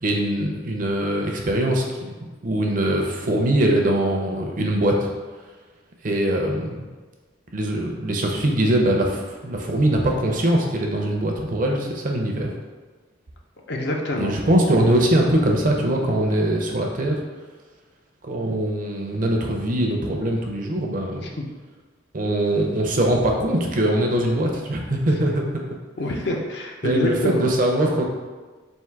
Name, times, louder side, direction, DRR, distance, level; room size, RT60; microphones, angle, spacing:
voice 1, 0.0-2.1 2.4-5.1 6.0-6.8 7.5-12.5 14.2-17.2 18.2-21.3 22.1-25.6 26.8-28.0, right 1 dB, 40° right, 1 dB, 0.5 m, -22 dB
voice 2, 13.7-14.4 21.4-21.5 26.0-27.4, left 1 dB, 55° left, 1 dB, 0.6 m, -26 dB
3.6 x 2.6 x 4.5 m, 1.3 s
head